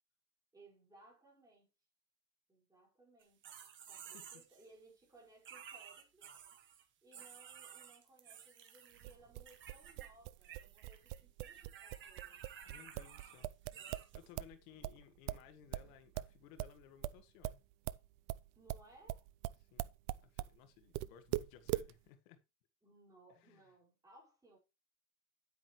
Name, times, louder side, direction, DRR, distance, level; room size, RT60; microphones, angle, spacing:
voice 1, 0.5-1.7 2.5-3.4 3.9-6.3 7.0-12.8 14.7-15.1 18.6-19.3 22.8-24.6, right 2 dB, 10° right, 5.2 m, -64 dB
sound 1, 3.2-4.7 5.4-6.8 7.1-9.2 9.5-10.1 10.3-14.3, right 8 dB, 30° right, 1.7 m, -54 dB
sound 2, 9.0-14.6 14.8-20.6 20.9-21.9, right 17 dB, 60° right, 0.6 m, -41 dB
voice 2, 12.7-13.5 14.1-17.6 19.6-19.9 20.2-22.4 23.3-23.7, left 9 dB, 85° left, 1.7 m, -60 dB
9.8 x 9.2 x 3.1 m
cardioid pair, 170°, 41 cm